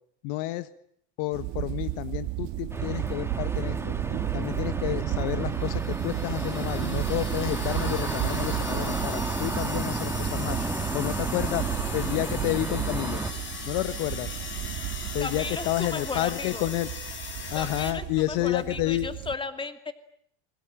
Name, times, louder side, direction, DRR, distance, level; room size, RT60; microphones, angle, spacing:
voice 1, 0.2-0.7 1.2-3.9 4.3-11.6 11.9-13.2 13.6-14.3 15.1-16.9 17.5-19.1, left 17 dB, 65° left, 13 dB, 1.5 m, -30 dB
sound 1, 1.3-19.4, right 17 dB, 55° right, 2.1 m, -34 dB
sound 2, 2.7-13.3, right 3 dB, 5° right, 2.2 m, -32 dB
sound 3, 5.5-17.9, left 5 dB, 35° left, 7.0 m, -39 dB
voice 2, 15.2-16.7 17.5-19.9, left 4 dB, 15° left, 9 dB, 2.5 m, -35 dB
28.0 x 22.5 x 9.0 m, 0.66 s
supercardioid pair, 115°, 34 cm